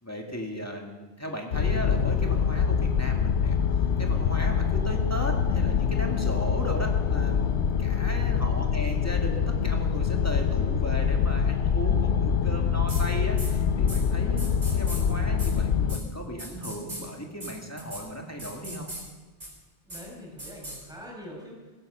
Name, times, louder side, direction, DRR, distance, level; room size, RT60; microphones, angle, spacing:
voice 1, 0.0-3.6 4.0-18.9, equal, 15° left, 1 dB, 1.8 m, -36 dB
sound 1, 1.5-16.0, left 7 dB, 75° left, 1.0 m, -25 dB
voice 2, 7.8-8.3 19.8-21.7, equal, 5° right, -4 dB, 5.3 m, -44 dB
sound 2, 12.9-13.0 13.4-13.5 13.9-14.0 14.4-15.0 15.4-15.5 15.9-16.0 16.4-17.0 17.4-17.5 17.8-18.0 18.4-19.0 19.4-19.5 19.9-20.0 20.4-20.8, right 1 dB, 35° right, 4.0 m, -38 dB
16.5 x 10.5 x 6.7 m, 1.3 s
omnidirectional pair, 1.1 m